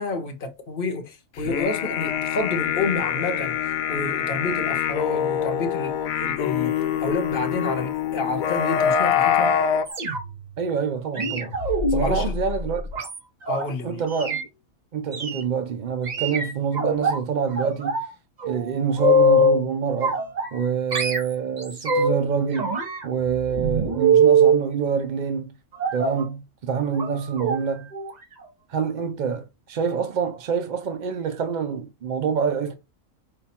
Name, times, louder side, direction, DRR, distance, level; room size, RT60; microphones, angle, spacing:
voice 1, 0.0-3.6 3.9-6.7 7.0-9.5 11.9-12.3 13.4-14.0, left 3 dB, 45° left, 1.0 m, -29 dB
sound 1, 1.4-9.9, left 8 dB, 80° left, 1.0 m, -24 dB
sound 2, 9.9-10.5 11.1-13.6 14.1-14.4 15.1-15.4 16.1-17.2 17.6-18.1 18.4-19.6 20.0-20.6 20.9-22.2 22.5-24.6 25.8-26.2 26.9-27.1 27.4-27.6 27.9-28.1 28.4-28.5, right 2 dB, 35° right, 1.0 m, -23 dB
voice 2, 10.6-11.6 11.9-12.8 13.8-14.4 14.9-18.0 18.4-20.2 20.5-22.8 23.0-25.5 25.9-27.9 28.7-32.7, right 6 dB, 60° right, 0.4 m, -26 dB
5.5 x 2.3 x 4.2 m
omnidirectional pair, 1.4 m